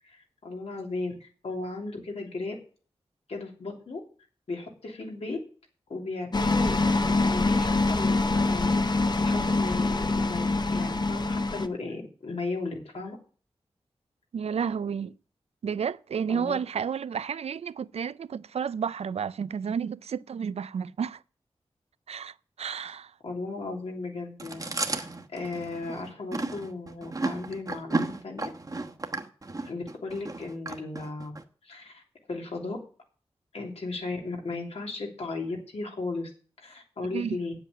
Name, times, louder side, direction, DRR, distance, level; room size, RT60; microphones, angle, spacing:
voice 1, 0.0-2.5 3.3-4.0 4.5-5.4 5.9-13.2 16.3-16.6 23.2-25.1 25.3-28.5 29.6-31.3 31.6-32.0 32.3-32.8 33.5-36.3 36.6-37.5, left 3 dB, 80° left, 3.0 m, -36 dB
sound 1, 6.3-11.7, left 3 dB, 45° left, 0.9 m, -25 dB
voice 2, 14.3-15.1 15.6-21.2 22.1-23.1 37.1-37.4, right 7 dB, 90° right, 0.4 m, -31 dB
Chewing mastication, 24.4-31.4, right 2 dB, 35° right, 1.2 m, -33 dB
9.1 x 7.9 x 7.4 m
wide cardioid pair, 70°, 10 cm